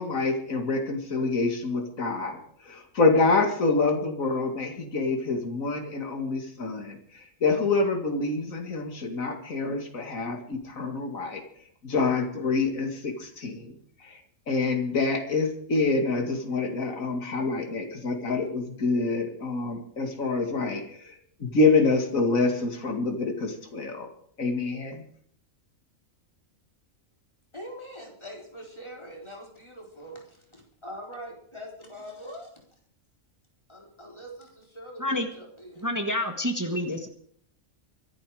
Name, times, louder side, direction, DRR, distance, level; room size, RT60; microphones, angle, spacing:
voice 1, 0.0-2.4 2.6-11.4 11.8-13.7 14.0-14.2 14.5-24.1 24.4-25.0, left 3 dB, 75° left, 4 dB, 2.6 m, -26 dB
voice 2, 27.5-32.5 33.7-35.9, equal, 20° left, 0 dB, 4.1 m, -43 dB
voice 3, 35.8-37.1, left 1 dB, 15° right, 6 dB, 1.4 m, -28 dB
24.0 x 11.5 x 5.0 m, 0.63 s
omnidirectional pair, 1.4 m